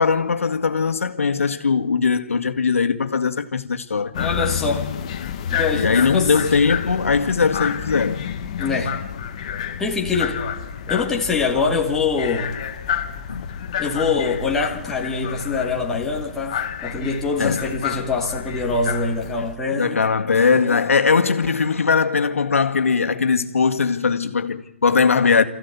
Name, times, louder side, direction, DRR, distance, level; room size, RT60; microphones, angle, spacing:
voice 1, 0.0-4.1 5.7-8.5 11.5-11.7 13.3-13.5 17.4-17.7 19.8-25.4, left 5 dB, 80° left, 1.8 m, -20 dB
sound 1, 4.1-19.5, left 8 dB, 30° left, 1.2 m, -29 dB
voice 2, 4.2-4.9 5.5-6.3 8.6-8.9 9.8-10.4 10.9-12.5 13.8-20.0 20.5-20.8, left 4 dB, 5° left, 1.7 m, -24 dB
28.0 x 15.0 x 8.3 m
hypercardioid pair, 175°, 7 cm